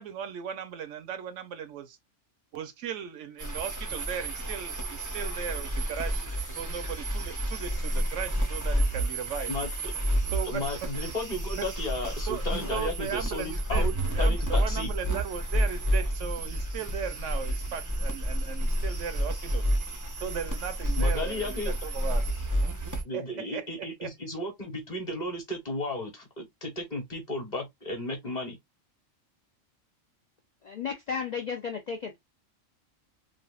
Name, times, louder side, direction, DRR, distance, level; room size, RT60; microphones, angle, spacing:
voice 1, 0.0-2.0 2.5-9.5 10.3-10.9 11.6-11.7 12.3-12.4 12.7-13.9 14.1-19.7 20.2-22.2 22.6-22.7 23.1-24.1, right 7 dB, 75° right, 0.9 m, -37 dB
sound 1, 3.4-23.0, right 1 dB, 25° right, 0.4 m, -30 dB
voice 2, 10.5-14.9 21.0-21.7 23.0-28.6, left 1 dB, 35° left, 1.1 m, -34 dB
voice 3, 30.6-32.2, left 6 dB, 70° left, 0.4 m, -34 dB
3.3 x 2.4 x 2.3 m
omnidirectional pair, 1.3 m